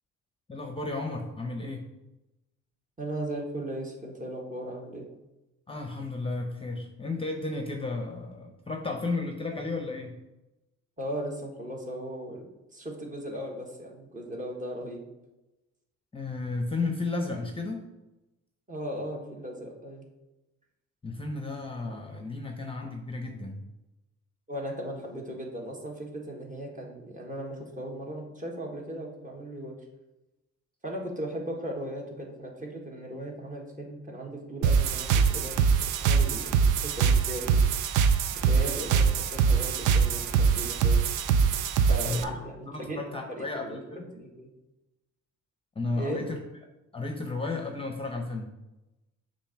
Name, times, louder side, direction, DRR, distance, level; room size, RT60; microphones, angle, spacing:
voice 1, 0.5-1.9 5.7-10.2 16.1-17.8 21.0-23.6 42.0-44.1 45.8-46.4 46.9-48.6, left 3 dB, 20° left, 2 dB, 0.8 m, -33 dB
voice 2, 3.0-5.0 11.0-12.4 12.7-15.0 18.7-20.0 22.6-22.7 24.5-29.7 30.8-36.6 37.0-37.6 38.4-41.0 41.9-43.8 44.1-44.5 45.9-46.2, right 1 dB, 25° right, -1 dB, 1.6 m, -37 dB
sound 1, 34.6-42.2, right 6 dB, 85° right, 0.5 m, -23 dB
6.9 x 2.7 x 5.8 m, 1.0 s
cardioid pair, 90°, 30 cm